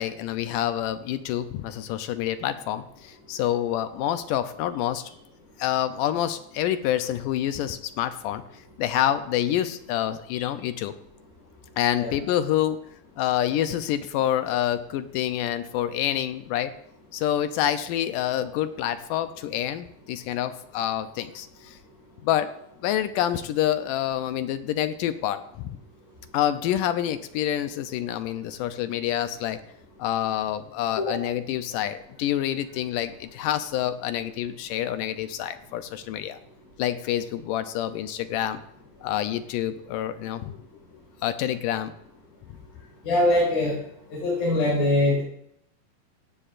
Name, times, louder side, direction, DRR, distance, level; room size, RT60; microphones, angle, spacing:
voice 1, 0.0-5.1 5.6-8.4 8.8-10.9 11.8-12.9 13.2-16.7 17.1-21.8 22.2-22.5 22.8-25.8 26.3-29.6 30.0-36.4 36.8-38.6 39.0-40.6 41.2-41.9, left 11 dB, 80° left, 10 dB, 1.9 m, -27 dB
voice 2, 43.0-43.8 44.1-45.2, left 1 dB, 60° left, -7 dB, 6.7 m, -22 dB
17.0 x 15.5 x 2.5 m, 0.75 s
omnidirectional pair, 4.2 m